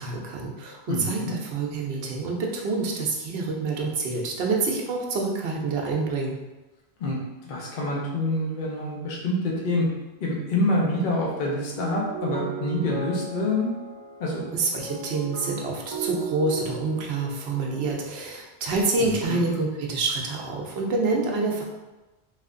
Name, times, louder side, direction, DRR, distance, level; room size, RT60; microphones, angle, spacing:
voice 1, 0.0-6.4 14.5-21.6, right 3 dB, 75° right, -1 dB, 0.9 m, -27 dB
voice 2, 0.9-1.3 7.0-7.2 7.4-9.9 10.2-13.7 14.2-14.5 19.0-19.4, left 1 dB, 55° left, -3 dB, 0.8 m, -26 dB
sound 1, 10.7-17.9, right 6 dB, 50° right, 0.5 m, -37 dB
3.3 x 2.7 x 2.5 m, 1.1 s
omnidirectional pair, 1.1 m